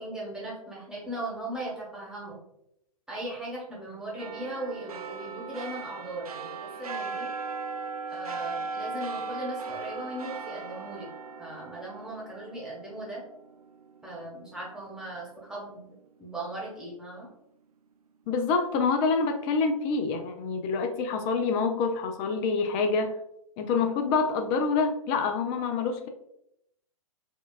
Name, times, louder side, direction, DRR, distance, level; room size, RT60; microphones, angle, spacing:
voice 1, 0.0-2.4 3.1-7.3 8.1-11.1 11.4-13.2 14.0-15.9 16.2-17.3, right 1 dB, 5° right, -6 dB, 1.2 m, -38 dB
sound 1, 4.2-15.0 15.4-15.5, right 4 dB, 80° right, 0.4 m, -38 dB
voice 2, 18.3-23.2 23.6-26.1, left 4 dB, 25° left, 6 dB, 0.3 m, -26 dB
4.3 x 2.3 x 2.3 m, 0.79 s
figure-of-eight pair, 115°, 19 cm